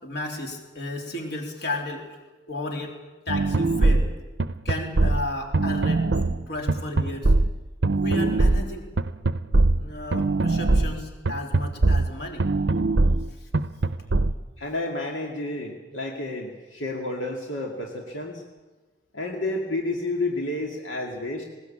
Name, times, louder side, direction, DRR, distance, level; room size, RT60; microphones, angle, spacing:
voice 1, 0.0-2.1 2.5-3.0 3.3-4.1 4.7-6.1 6.5-7.3 8.0-8.9 9.8-12.5 13.4-13.5, left 1 dB, 55° left, 1 dB, 3.6 m, -33 dB
sound 1, 3.3-14.3, right 2 dB, 60° right, 0.7 m, -22 dB
voice 2, 14.6-18.4 19.1-21.4, left 2 dB, 75° left, 0 dB, 2.4 m, -30 dB
19.5 x 19.5 x 8.6 m, 1.2 s
head